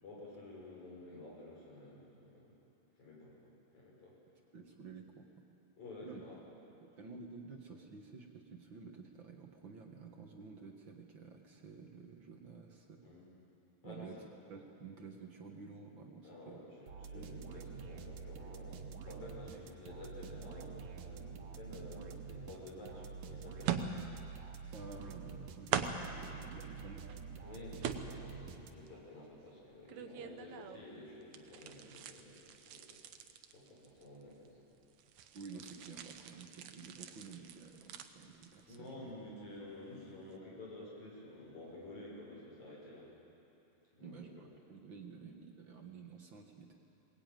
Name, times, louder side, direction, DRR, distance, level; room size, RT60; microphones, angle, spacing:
voice 1, 0.0-2.6 3.0-3.4 3.7-4.2 5.8-6.4 13.0-13.2 13.8-14.2 16.2-24.0 27.4-33.0 33.5-34.6 38.7-43.1 43.9-44.5, left 2 dB, 65° left, -4 dB, 7.5 m, -51 dB
voice 2, 4.5-5.5 6.0-6.2 6.8-13.0 13.8-14.2 14.5-16.6 17.1-17.4 24.7-27.0 35.3-39.1 44.0-46.8, right 5 dB, 50° right, 2 dB, 1.7 m, -51 dB
sound 1, 16.9-29.1, right 5 dB, 85° right, 2.8 m, -48 dB
sound 2, 22.9-23.0 23.6-24.3 24.6-25.3 25.7-26.2 26.8-27.4 27.8-28.5 28.9-30.9 31.2-34.5 34.8-39.0 39.3-39.6 40.0-40.1, right 8 dB, 70° right, 2.1 m, -42 dB
21.5 x 20.0 x 9.2 m, 2.9 s
omnidirectional pair, 3.6 m